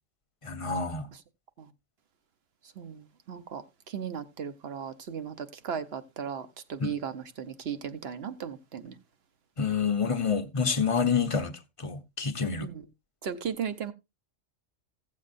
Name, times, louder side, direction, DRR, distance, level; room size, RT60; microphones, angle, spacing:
voice 1, 0.4-1.1 6.8-6.9 9.6-12.7, left 6 dB, 30° left, 0.7 m, -28 dB
voice 2, 2.8-3.6 3.9-8.9 12.6-12.8 13.2-13.9, right 7 dB, 55° right, 1.0 m, -36 dB
16.0 x 7.5 x 2.5 m
omnidirectional pair, 1.3 m